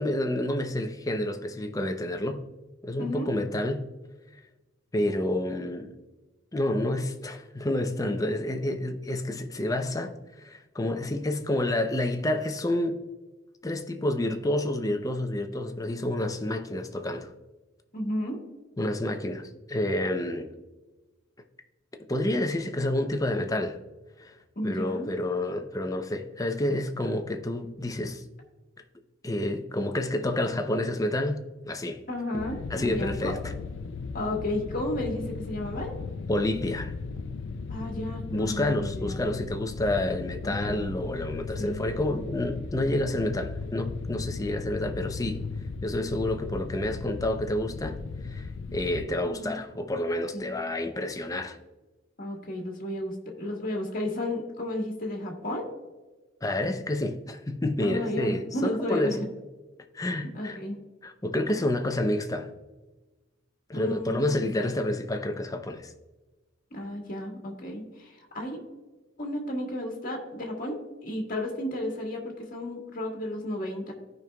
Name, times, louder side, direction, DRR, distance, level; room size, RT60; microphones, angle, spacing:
voice 1, 0.0-2.4 2.8-3.9 4.9-6.0 6.5-10.1 10.4-13.0 13.6-17.3 18.8-20.5 22.1-23.8 24.2-24.4 24.6-28.2 29.2-32.0 32.7-33.4 36.3-36.9 38.3-45.4 45.8-48.0 48.2-51.6 56.4-59.2 59.9-60.6 61.0-62.5 63.7-65.9, left 1 dB, 20° left, 0.6 m, -29 dB
voice 2, 3.0-3.3 17.9-18.4 24.5-25.1 32.1-33.3 34.1-35.9 37.7-39.2 40.4-40.8 41.6-41.8 49.2-49.6 50.3-50.5 52.2-55.7 57.8-59.2 60.3-60.8 61.5-61.6 63.7-64.2 64.6-64.7 66.7-68.6 69.2-73.9, left 1 dB, 45° left, 1.6 m, -33 dB
sound 1, 32.4-49.1, left 4 dB, 70° left, 0.4 m, -37 dB
15.0 x 5.3 x 2.3 m
head